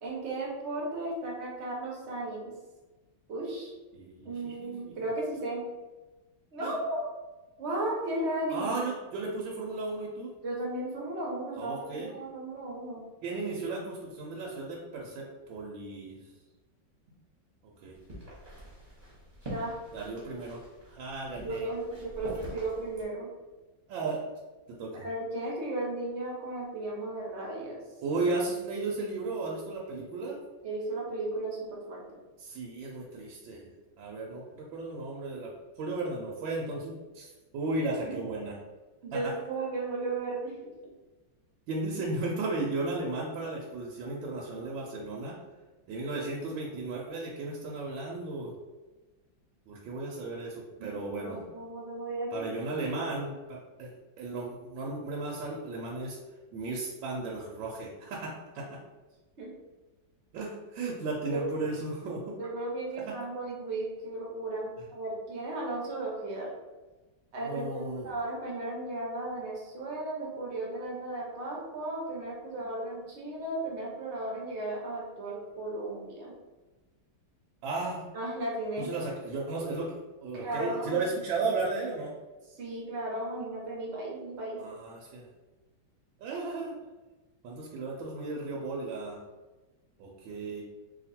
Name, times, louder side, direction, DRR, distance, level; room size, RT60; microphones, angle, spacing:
voice 1, 0.0-2.5 3.3-3.7 4.2-5.6 6.5-7.1 7.6-8.7 10.4-13.0 19.5-19.8 21.4-23.3 24.9-27.8 30.6-32.0 38.0-38.2 39.0-40.7 50.8-52.4 52.9-53.1 59.4-59.5 61.3-61.4 62.4-66.5 67.3-76.3 78.1-78.9 80.3-81.0 82.5-84.6, right 2 dB, 50° right, -3 dB, 0.8 m, -35 dB
voice 2, 3.9-4.3 4.6-4.7 6.6-6.7 8.5-10.3 11.5-12.1 13.2-16.2 17.8-17.9 19.9-20.6 20.8-21.7 22.2-22.3 23.9-24.2 24.7-25.0 28.0-30.4 32.4-33.7 34.0-35.5 35.8-37.3 37.5-38.6 39.1-39.3 41.7-45.4 45.9-48.5 49.7-51.5 52.3-53.9 54.2-56.2 56.5-58.6 60.3-62.4 63.0-63.2 67.4-68.1 77.6-78.1 78.8-79.9 80.2-82.1 84.6-85.3 86.2-86.8 87.4-89.2 90.0-90.6, right 3 dB, 80° right, -3 dB, 1.3 m, -35 dB
sound 1, 17.9-23.0, right 1 dB, 25° right, 1.0 m, -45 dB
2.9 x 2.6 x 4.2 m, 1.2 s
omnidirectional pair, 2.1 m